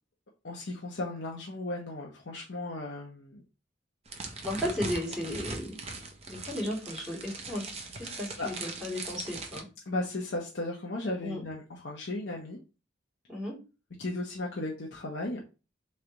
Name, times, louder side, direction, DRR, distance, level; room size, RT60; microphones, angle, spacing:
voice 1, 0.4-3.4 8.0-8.5 9.9-12.6 14.0-15.4, left 2 dB, 60° left, -1 dB, 0.8 m, -36 dB
sound 1, 4.1-9.6, right 3 dB, 30° right, 0.7 m, -40 dB
voice 2, 4.4-5.8 6.3-9.6 11.2-11.4 13.3-13.6, left 1 dB, 5° right, -5 dB, 2.1 m, -35 dB
3.4 x 3.2 x 3.9 m, 0.31 s
head